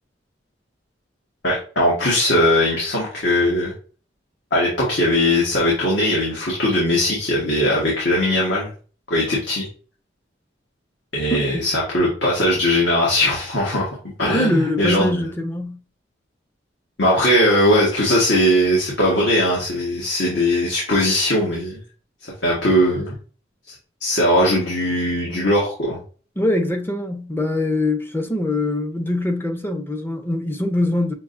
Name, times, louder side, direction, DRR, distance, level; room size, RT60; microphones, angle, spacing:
voice 1, 1.4-3.7 4.5-8.7 9.1-9.7 11.1-15.2 17.0-21.8 22.2-23.1 24.0-26.0, left 1 dB, 70° left, 1.4 m, -19 dB
voice 2, 11.3-11.7 14.3-15.8 26.4-31.1, left 1 dB, 10° left, 0.5 m, -23 dB
6.0 x 2.8 x 2.5 m
head